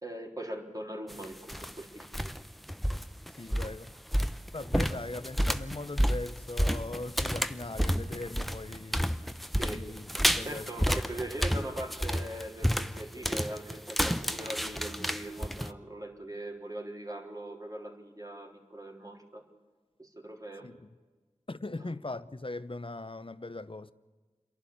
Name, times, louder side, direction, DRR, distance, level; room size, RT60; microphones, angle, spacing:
voice 1, 0.0-2.3 4.9-5.0 9.6-9.8 10.4-19.4 20.0-20.7, right 1 dB, 30° right, 3.7 m, -41 dB
sound 1, 1.1-1.7 2.0-2.4 2.7-15.7, equal, ahead, 0.8 m, -30 dB
voice 2, 3.4-4.0 4.5-9.1 9.7-10.0 10.3-10.9 20.6-20.9 21.5-23.9, left 2 dB, 45° left, 0.9 m, -40 dB
29.0 x 11.5 x 8.5 m
wide cardioid pair, 45°, 13 cm